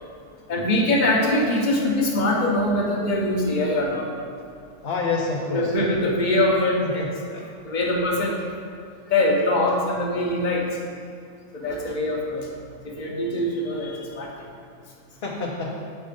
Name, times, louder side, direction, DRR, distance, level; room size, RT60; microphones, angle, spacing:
voice 1, 0.5-4.1 5.5-7.1 7.4-8.4 9.1-10.7 11.5-12.5 12.8-14.3, left 1 dB, 35° left, -1 dB, 1.1 m, -23 dB
voice 2, 4.8-5.7 7.0-7.5 15.2-15.8, left 3 dB, 55° left, -2 dB, 0.9 m, -28 dB
7.5 x 5.0 x 5.1 m, 2.2 s
omnidirectional pair, 1.4 m